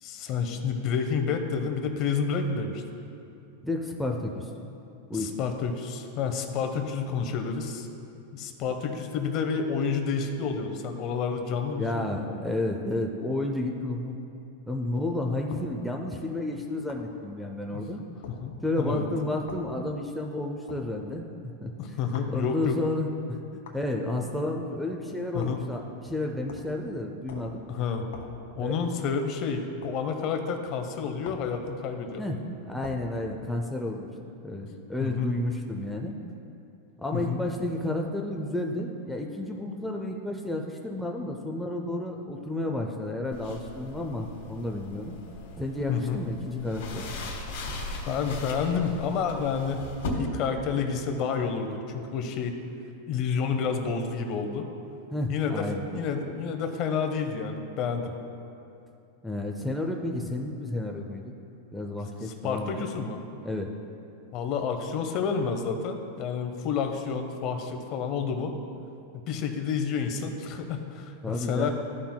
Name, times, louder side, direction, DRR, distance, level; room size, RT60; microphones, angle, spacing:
voice 1, 0.0-2.8 5.1-7.9 8.3-12.0 17.7-17.8 18.3-19.0 21.8-22.8 25.3-25.6 27.7-28.1 28.5-32.2 35.0-35.3 37.1-37.4 45.9-46.2 48.0-52.6 53.1-54.7 55.3-58.1 62.2-63.2 64.3-68.5 69.1-71.7, left 6 dB, 40° left, 5 dB, 0.7 m, -29 dB
voice 2, 3.6-4.5 5.1-5.3 11.8-14.2 14.7-18.0 18.6-27.6 28.6-28.7 32.2-32.4 32.7-34.1 34.4-36.1 37.0-45.2 45.6-47.0 55.1-55.8 56.2-56.3 59.2-61.3 61.7-62.9 63.4-63.7 71.2-71.7, left 1 dB, ahead, 0 dB, 0.5 m, -31 dB
sound 1, 15.5-15.7 16.9-17.1 18.2-18.4 19.5-19.7 20.7-20.9 22.1-22.4 23.6-23.8 25.4-25.7 26.5-26.8 27.3-27.6 28.1-28.4 29.8-30.0 31.2-31.5 32.8-33.1, left 5 dB, 80° left, 1.2 m, -44 dB
sound 2, 43.3-50.1, left 2 dB, 65° left, 1.5 m, -39 dB
13.5 x 5.7 x 2.2 m, 2.7 s
supercardioid pair, 150°, 0 cm